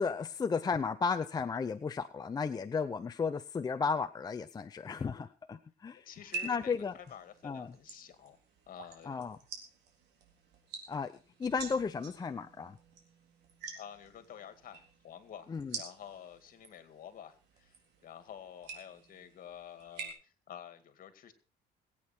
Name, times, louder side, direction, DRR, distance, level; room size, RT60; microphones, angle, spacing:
voice 1, 0.0-6.0 6.4-6.9 7.4-7.7 9.1-9.4 10.9-11.1 11.4-12.8 15.5-15.8, left 5 dB, 25° left, 9 dB, 0.6 m, -34 dB
voice 2, 6.1-8.4 8.7-9.2 13.7-21.3, left 9 dB, 55° left, 10 dB, 2.3 m, -50 dB
sound 1, 6.1-20.1, right 5 dB, 80° right, 3.7 m, -48 dB
21.5 x 8.8 x 4.4 m, 0.36 s
cardioid pair, 110°, 17 cm